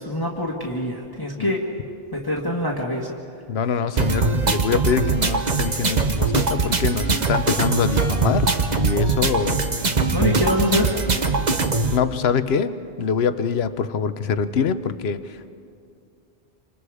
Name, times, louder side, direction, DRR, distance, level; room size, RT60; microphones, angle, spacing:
voice 1, 0.0-1.6 2.1-3.1 10.1-11.0, left 1 dB, 20° left, -2 dB, 1.7 m, -24 dB
voice 2, 3.5-9.7 10.1-10.4 11.9-15.5, left 6 dB, 75° left, 12 dB, 1.1 m, -24 dB
sound 1, 4.0-12.0, right 4 dB, 45° right, 1.2 m, -22 dB
28.5 x 26.0 x 4.9 m, 2.4 s
omnidirectional pair, 1.1 m